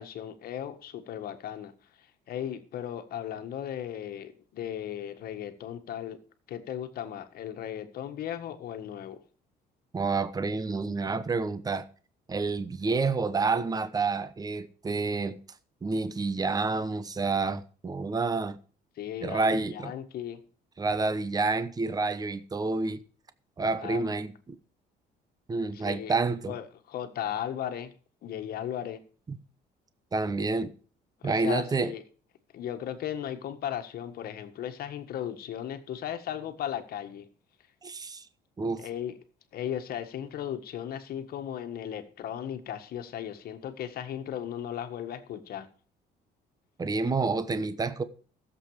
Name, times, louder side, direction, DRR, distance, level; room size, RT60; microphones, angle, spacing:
voice 1, 0.0-1.7 2.0-6.2 6.5-9.2 19.0-20.4 23.8-24.1 25.7-26.1 26.5-27.9 28.2-29.0 31.2-32.0 32.5-37.3 38.8-39.1 39.5-45.7, left 10 dB, 65° left, 1.6 m, -36 dB
voice 2, 9.9-11.9 12.3-15.4 15.8-18.6 19.2-19.9 20.8-23.0 23.6-24.6 25.5-26.6 29.3-29.4 30.1-30.7 31.2-31.9 37.8-38.3 38.6-38.9 46.8-48.0, right 3 dB, 20° right, 1.0 m, -29 dB
15.5 x 7.7 x 4.9 m
cardioid pair, 110°, 17 cm